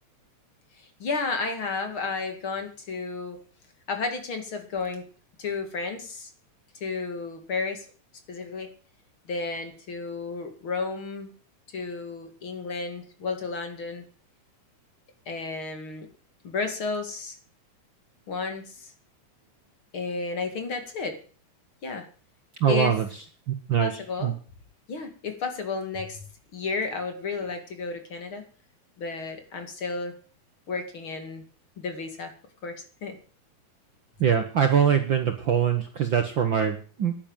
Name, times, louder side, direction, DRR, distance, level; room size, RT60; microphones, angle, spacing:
voice 1, 0.8-3.4 3.9-5.0 5.4-6.3 6.8-7.9 8.3-8.7 9.3-11.3 11.7-14.0 15.3-16.1 16.4-17.4 18.3-18.9 19.9-21.2 21.8-22.0 22.7-22.9 23.8-24.3 24.9-26.2 26.5-28.4 29.0-30.2 30.7-31.4 31.8-32.3 32.6-33.2, left 4 dB, 45° left, 7 dB, 3.0 m, -32 dB
voice 2, 22.6-23.1 23.5-23.9 24.2-24.3 34.2-37.1, right 8 dB, 50° right, 7 dB, 1.6 m, -23 dB
11.5 x 10.0 x 9.1 m, 0.40 s
omnidirectional pair, 3.4 m